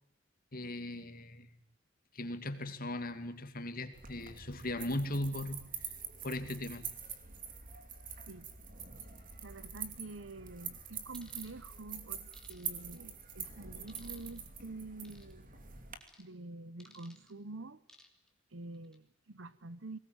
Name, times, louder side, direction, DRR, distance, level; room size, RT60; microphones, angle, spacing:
voice 1, 0.5-1.5 2.1-5.6 6.2-6.8, left 1 dB, 50° left, 2.4 m, -38 dB
sound 1, 3.9-16.0, right 7 dB, 45° right, 2.8 m, -45 dB
voice 2, 9.4-15.5 16.2-17.8 18.5-20.0, right 2 dB, 70° right, 1.1 m, -47 dB
sound 2, 11.1-11.5 12.3-13.0 13.9-14.4 15.0-15.3 16.0-16.3 16.8-17.3 17.9-18.3 18.7-19.0, left 1 dB, 5° left, 2.9 m, -59 dB
22.5 x 19.5 x 9.2 m
head